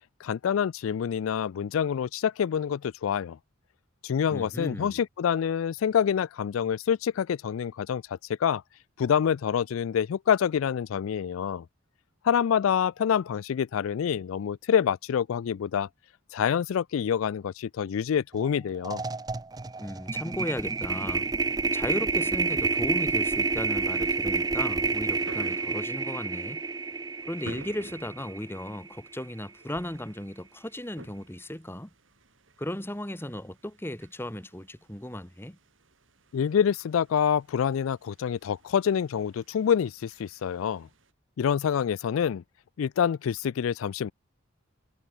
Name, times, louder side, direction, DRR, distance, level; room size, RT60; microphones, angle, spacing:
voice 1, 0.2-3.4 4.0-8.6 9.0-11.6 12.2-15.9 16.3-19.0 36.3-40.9 41.4-42.4 42.8-44.1, left 8 dB, 85° left, 0.4 m, -26 dB
voice 2, 4.3-5.0 19.8-21.3 21.7-26.6 27.3-31.9 32.6-35.6, left 1 dB, 10° left, 1.9 m, -36 dB
sound 1, 18.3-18.5 18.8-29.1, right 4 dB, 20° right, 0.5 m, -29 dB
sound 2, 21.8-41.1, right 2 dB, 70° right, 3.5 m, -53 dB
head